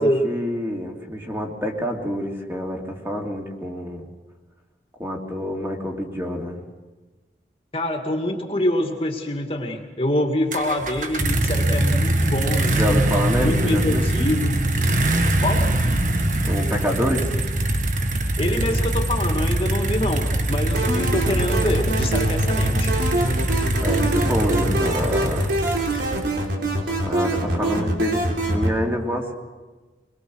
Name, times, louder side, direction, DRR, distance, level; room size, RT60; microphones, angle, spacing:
voice 1, 0.2-4.0 5.0-6.6 12.7-14.0 16.5-17.4 23.8-25.5 27.0-29.3, equal, 15° right, 0 dB, 2.7 m, -27 dB
voice 2, 7.7-13.0 13.4-14.6 15.4-15.7 18.4-22.9, left 1 dB, 30° left, 2 dB, 2.1 m, -25 dB
sound 1, 10.5-26.5, right 1 dB, 45° right, 1.5 m, -23 dB
sound 2, 20.7-28.7, right 1 dB, 80° right, 3.8 m, -25 dB
24.0 x 22.0 x 6.3 m, 1.3 s
head